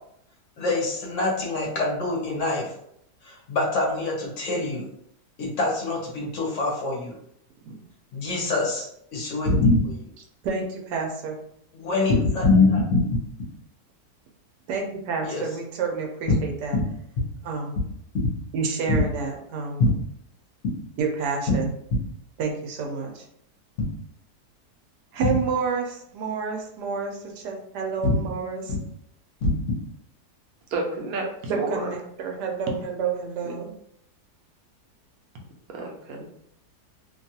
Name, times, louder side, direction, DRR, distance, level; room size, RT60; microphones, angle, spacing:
voice 1, 0.6-2.7 3.2-4.9 5.4-7.1 8.1-10.0 11.7-13.0 15.2-15.4 16.7-16.8 18.9-19.0 19.8-19.9 25.3-25.4 29.4-29.5, left 2 dB, 55° left, -1 dB, 1.0 m, -24 dB
voice 2, 10.4-11.4 14.7-16.8 17.4-17.8 18.5-19.8 21.0-21.7 22.4-23.2 25.1-28.7 31.5-33.7, right 5 dB, 85° right, 2 dB, 1.2 m, -29 dB
voice 3, 30.7-31.3 31.5-31.9 33.5-33.6 35.7-36.3, right 2 dB, 70° right, 0 dB, 1.0 m, -30 dB
2.9 x 2.3 x 2.7 m, 0.72 s
omnidirectional pair, 1.7 m